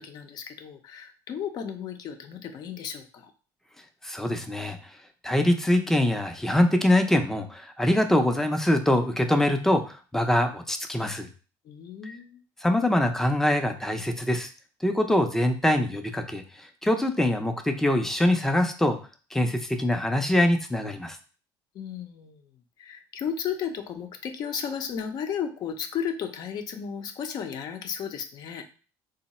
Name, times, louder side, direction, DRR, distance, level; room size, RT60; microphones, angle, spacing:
voice 1, 0.0-3.3 11.6-12.4 21.7-22.5 22.8-28.6, left 7 dB, 50° left, 7 dB, 0.6 m, -34 dB
voice 2, 4.0-4.8 5.2-11.3 12.1-12.2 12.6-14.5 14.8-19.0 19.3-21.2, left 1 dB, 5° left, 6 dB, 0.5 m, -24 dB
3.7 x 2.0 x 4.1 m, 0.37 s
cardioid pair, 120°, 9 cm